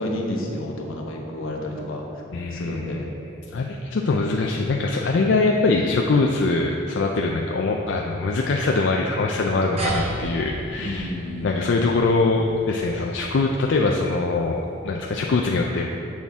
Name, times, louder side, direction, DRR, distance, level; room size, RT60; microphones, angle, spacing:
voice 1, 0.0-2.1 2.5-3.1 10.8-11.9, left 1 dB, 80° left, 0 dB, 1.0 m, -31 dB
voice 2, 2.3-3.0 3.5-11.1 11.4-15.9, left 3 dB, 60° left, 0 dB, 0.4 m, -23 dB
sound 1, 9.8-14.6, right 2 dB, 30° right, 0.9 m, -34 dB
7.1 x 6.3 x 3.6 m, 2.7 s
head